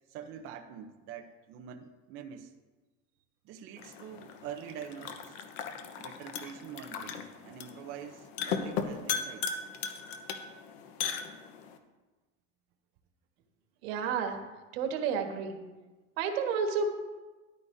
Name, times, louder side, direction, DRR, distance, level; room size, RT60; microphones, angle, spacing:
voice 1, 0.1-2.5 3.4-5.4 6.0-9.5, right 8 dB, 40° right, 4 dB, 0.7 m, -45 dB
sound 1, 3.8-11.8, left 6 dB, 80° left, 1.1 m, -38 dB
voice 2, 13.8-14.4 14.7-15.6 16.2-16.9, right 6 dB, 90° right, 4 dB, 1.6 m, -30 dB
13.0 x 10.5 x 2.7 m, 1.2 s
cardioid pair, 170°, 31 cm